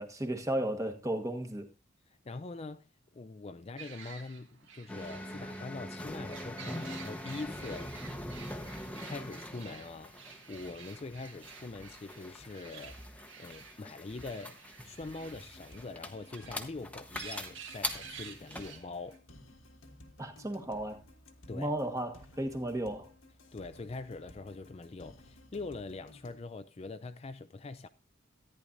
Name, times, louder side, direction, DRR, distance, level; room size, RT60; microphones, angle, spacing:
voice 1, 0.0-1.7 20.2-21.0 21.5-23.1, right 1 dB, 15° right, 1.3 m, -34 dB
voice 2, 2.1-8.1 9.0-13.0 13.4-19.2 21.5-21.7 23.5-27.9, left 3 dB, 30° left, 0.4 m, -43 dB
sound 1, 3.8-19.2, right 6 dB, 75° right, 1.8 m, -51 dB
sound 2, 4.9-18.7, left 1 dB, 5° left, 0.9 m, -43 dB
sound 3, 15.0-26.4, left 1 dB, 85° left, 1.6 m, -56 dB
14.0 x 9.9 x 2.5 m
head